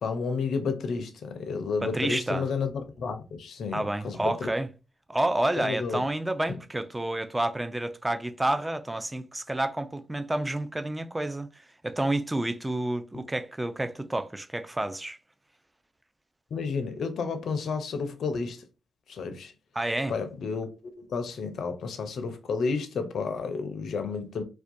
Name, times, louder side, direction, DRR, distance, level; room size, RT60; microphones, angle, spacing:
voice 1, 0.0-2.7 3.0-4.5 5.6-6.0 6.5-6.6 16.5-18.6 19.1-19.5 20.1-20.7 21.1-24.4, left 5 dB, 70° left, 0.4 m, -31 dB
voice 2, 1.8-2.5 3.7-4.7 5.1-15.2 19.7-20.2, right 1 dB, 15° right, 0.4 m, -29 dB
2.3 x 2.2 x 2.6 m
hypercardioid pair, 40°, 0 cm